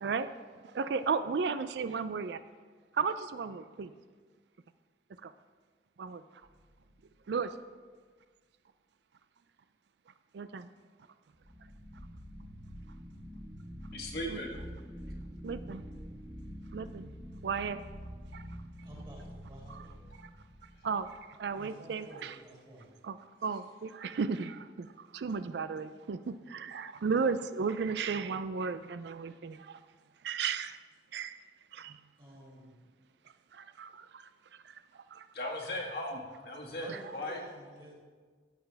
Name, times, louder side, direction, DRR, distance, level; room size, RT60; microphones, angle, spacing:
voice 1, 0.8-2.4 3.0-3.9 6.0-6.2 7.3-7.5 10.3-10.6 14.3-14.4 15.4-15.8 16.7-17.1 17.4-17.8 19.8-19.9 20.8-21.1 21.4-22.4 23.0-23.2 23.4-24.6 25.1-29.6 30.2-30.8 31.1-31.3 31.8-31.9 33.8-33.9 36.9-37.1, right 5 dB, 70° right, 12 dB, 0.4 m, -33 dB
sound 1, 6.4-7.0 11.3-21.5, equal, 5° right, 1.6 m, -46 dB
voice 2, 13.9-14.5 35.3-37.4, left 1 dB, 60° left, -1 dB, 1.7 m, -37 dB
voice 3, 18.8-20.0 21.6-22.9 32.2-32.7 36.7-37.9, right 1 dB, 25° right, -4 dB, 2.7 m, -51 dB
14.5 x 8.8 x 3.4 m, 1.5 s
head